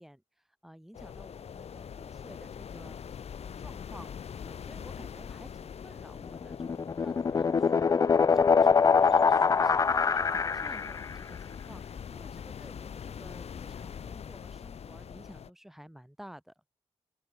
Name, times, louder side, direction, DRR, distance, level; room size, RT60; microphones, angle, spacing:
voice 1, 0.0-16.6, equal, 5° right, 6.4 m, -53 dB
Storm Waves, 0.9-15.5, left 7 dB, 70° left, 3.9 m, -43 dB
sound 1, 6.3-11.1, left 5 dB, 30° left, 0.4 m, -24 dB
open air
wide cardioid pair, 150°, 11 cm